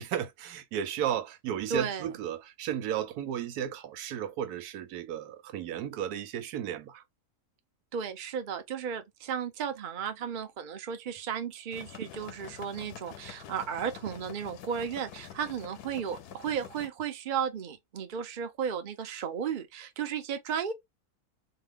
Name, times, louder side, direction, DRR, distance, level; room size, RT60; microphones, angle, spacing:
voice 1, 0.0-7.0, right 10 dB, 85° right, 1.2 m, -34 dB
voice 2, 1.7-2.1 7.9-20.7, right 7 dB, 45° right, 0.6 m, -34 dB
sound 1, 11.7-16.9, left 10 dB, 85° left, 1.2 m, -47 dB
4.3 x 2.1 x 3.6 m
omnidirectional pair, 1.6 m